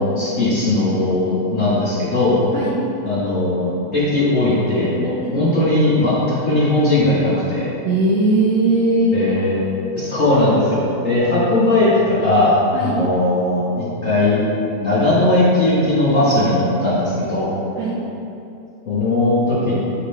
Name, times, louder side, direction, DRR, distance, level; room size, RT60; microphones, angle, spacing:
voice 1, 0.0-2.4 3.0-7.7 9.1-9.6 10.0-14.4 14.8-17.5 18.9-19.7, left 2 dB, 80° left, -11 dB, 0.7 m, -18 dB
voice 2, 7.8-9.1 12.7-13.0 17.8-17.9, right 2 dB, 80° right, -5 dB, 1.4 m, -18 dB
9.0 x 3.6 x 3.2 m, 2.7 s
omnidirectional pair, 3.5 m